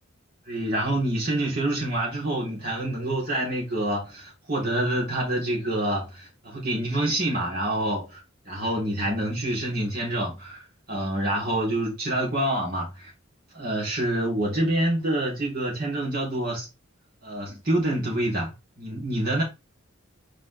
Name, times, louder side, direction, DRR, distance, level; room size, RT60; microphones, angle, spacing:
voice 1, 0.5-13.1 13.5-16.7 17.2-19.4, right 1 dB, 45° right, 3.7 m, -27 dB
5.5 x 5.1 x 3.5 m
head